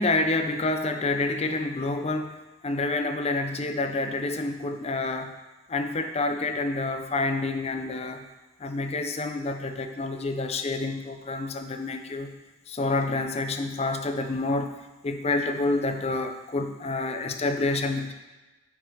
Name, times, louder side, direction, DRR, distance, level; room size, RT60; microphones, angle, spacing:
voice 1, 0.0-2.4 2.6-5.3 5.7-8.3 8.6-12.3 12.7-14.7 15.0-18.1, left 2 dB, 35° left, 6 dB, 0.6 m, -28 dB
7.2 x 4.9 x 4.9 m, 1.1 s
head